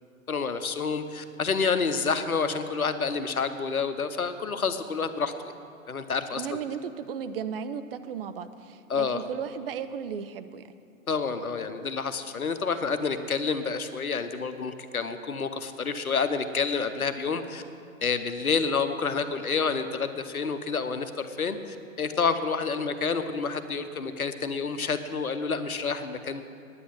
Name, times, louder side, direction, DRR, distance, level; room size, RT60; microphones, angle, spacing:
voice 1, 0.3-5.3 5.9-6.4 8.9-9.2 11.1-17.6 18.0-26.4, left 5 dB, 85° left, 10 dB, 0.9 m, -29 dB
voice 2, 6.3-10.6, right 7 dB, 45° right, 10 dB, 0.6 m, -35 dB
9.7 x 9.5 x 7.8 m, 2.4 s
figure-of-eight pair, 110°, 42 cm